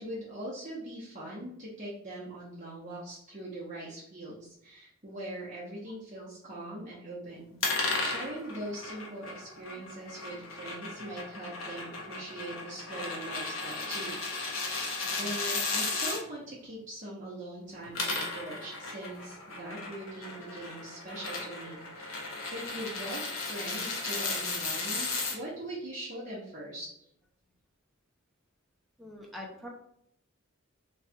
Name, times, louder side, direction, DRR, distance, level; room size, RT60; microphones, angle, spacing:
voice 1, 0.0-14.7 15.0-27.1, right 1 dB, 35° right, -8 dB, 0.9 m, -41 dB
sound 1, 7.6-16.2 17.7-25.4, left 3 dB, 80° left, 0.9 m, -35 dB
voice 2, 29.0-29.7, left 1 dB, ahead, -2 dB, 0.6 m, -43 dB
3.2 x 2.3 x 4.3 m, 0.72 s
head